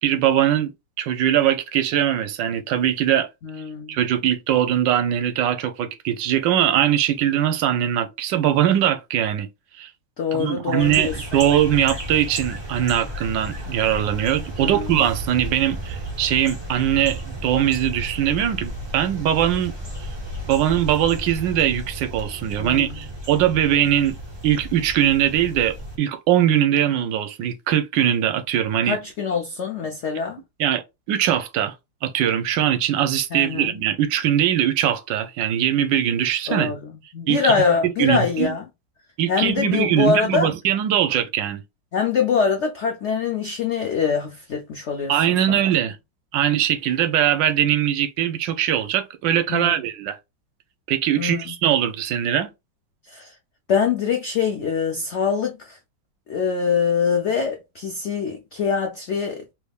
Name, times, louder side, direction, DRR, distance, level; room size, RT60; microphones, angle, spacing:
voice 1, 0.0-0.7 1.0-3.3 3.9-9.5 9.8-9.9 10.3-19.7 20.5-24.2 24.4-29.0 30.6-30.8 31.1-31.7 32.0-36.7 37.3-37.5 38.0-38.5 39.2-41.6 45.1-46.0 46.3-50.2 50.9-52.5, right 10 dB, 75° right, 1.3 m, -21 dB
voice 2, 3.4-4.0 10.2-11.4 14.6-15.0 22.6-23.1 28.8-30.4 33.3-33.7 36.5-38.6 39.3-40.5 41.9-45.6 49.5-49.7 51.2-51.5 53.1-53.3 53.7-55.8 56.3-59.4, left 6 dB, 80° left, 0.6 m, -24 dB
sound 1, 10.8-26.0, equal, 15° right, 1.2 m, -33 dB
3.4 x 3.3 x 2.3 m
omnidirectional pair, 2.0 m